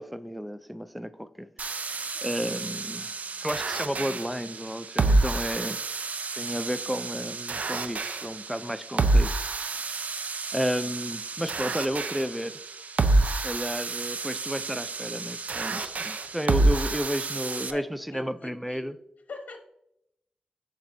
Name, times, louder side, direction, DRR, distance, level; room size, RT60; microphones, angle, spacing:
voice 1, 0.0-3.1 3.4-6.0 6.4-9.9 10.5-12.6 13.4-19.0, equal, ahead, 0.3 m, -32 dB
sound 1, 1.6-17.7, right 2 dB, 65° right, 0.5 m, -28 dB
voice 2, 2.1-2.5 2.9-3.4 16.9-17.0 17.4-18.9 19.3-19.7, left 4 dB, 70° left, 1.0 m, -45 dB
7.3 x 7.0 x 2.6 m
wide cardioid pair, 95°, 3 cm